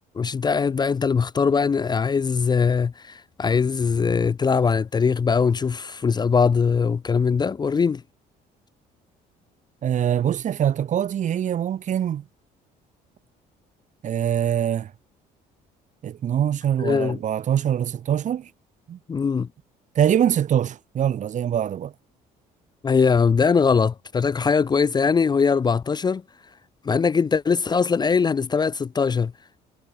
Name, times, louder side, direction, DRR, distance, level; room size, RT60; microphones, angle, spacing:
voice 1, 0.1-8.0 16.8-17.2 19.1-19.5 22.8-26.2 26.8-29.3, left 5 dB, 25° left, 0.5 m, -21 dB
voice 2, 9.8-12.2 14.0-14.9 16.0-18.5 18.9-19.0 19.9-21.9, right 10 dB, 45° right, 1.0 m, -23 dB
cardioid pair, 110°, 17 cm